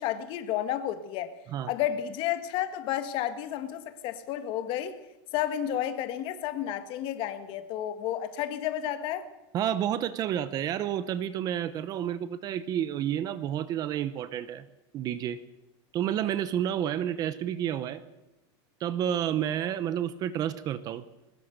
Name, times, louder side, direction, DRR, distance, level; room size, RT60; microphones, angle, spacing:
voice 1, 0.0-1.3 1.7-5.0 5.3-9.3, left 11 dB, 35° left, 1.8 m, -31 dB
voice 2, 9.5-14.7 14.9-15.4 15.9-18.0 18.8-21.0, right 10 dB, 25° right, 0.9 m, -30 dB
23.5 x 20.0 x 6.7 m
supercardioid pair, 170°, 14 cm